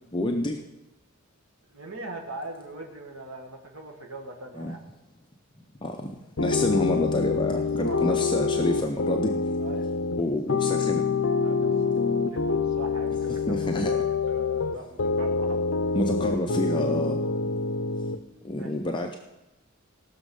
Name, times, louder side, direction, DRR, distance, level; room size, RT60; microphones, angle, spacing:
voice 1, 0.1-0.6 4.5-4.7 5.8-9.3 10.2-11.0 13.5-13.9 15.9-17.2 18.4-19.2, left 1 dB, 25° left, 3 dB, 0.6 m, -28 dB
voice 2, 1.7-4.8 7.5-8.5 9.6-9.9 11.4-11.9 12.2-15.6 18.6-18.9, right 1 dB, 80° right, 2 dB, 1.7 m, -41 dB
sound 1, 6.4-18.2, left 4 dB, 60° left, 0.6 m, -26 dB
17.5 x 6.3 x 5.3 m, 1.0 s
head